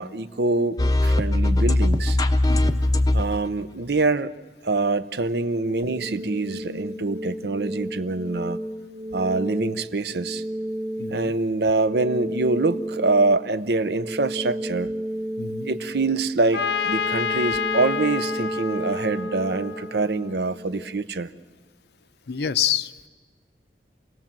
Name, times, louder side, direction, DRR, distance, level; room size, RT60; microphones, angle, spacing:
voice 1, 0.0-2.2 3.1-4.3 4.6-8.6 9.1-10.4 11.1-14.9 15.6-21.3, right 3 dB, 65° right, 13 dB, 0.7 m, -25 dB
sound 1, 0.8-3.5, left 1 dB, 20° left, 0.7 m, -20 dB
voice 2, 2.5-2.8 11.0-11.3 15.4-15.7 22.3-22.9, left 9 dB, 70° left, 13 dB, 0.7 m, -27 dB
sound 2, 5.8-20.8, right 1 dB, 35° right, 1.7 m, -33 dB
Trumpet, 16.5-20.3, left 6 dB, 90° left, 1.0 m, -29 dB
28.0 x 18.0 x 7.4 m, 1.4 s
head